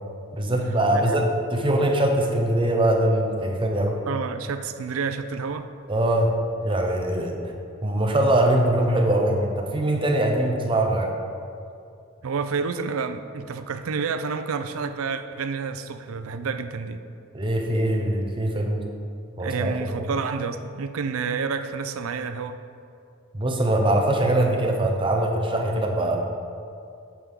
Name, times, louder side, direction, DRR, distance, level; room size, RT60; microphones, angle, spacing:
voice 1, 0.3-4.0 5.9-6.3 6.6-7.5 7.8-11.1 17.3-18.9 19.4-20.1 23.3-26.2, right 1 dB, 25° right, 2 dB, 0.7 m, -22 dB
voice 2, 0.9-1.2 4.1-5.7 12.2-17.0 19.4-22.6, right 5 dB, 85° right, 10 dB, 0.4 m, -29 dB
8.5 x 6.1 x 3.7 m, 2.5 s
head